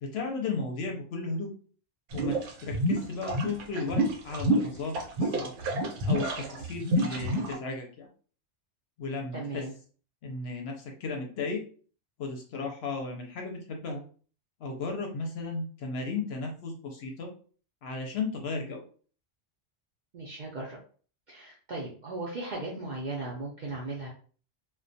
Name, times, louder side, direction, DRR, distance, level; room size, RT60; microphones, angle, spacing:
voice 1, 0.0-1.5 2.1-5.5 6.0-8.1 9.0-9.6 10.2-11.6 12.2-14.0 14.6-17.3 17.8-18.8, left 3 dB, 65° left, 3 dB, 0.8 m, -35 dB
sound 1, 2.1-7.5, right 1 dB, 80° right, 0.9 m, -28 dB
voice 2, 9.3-9.7 20.1-20.8 21.3-24.1, right 2 dB, 60° right, -3 dB, 0.5 m, -37 dB
2.2 x 2.1 x 2.6 m, 0.42 s
omnidirectional pair, 1.3 m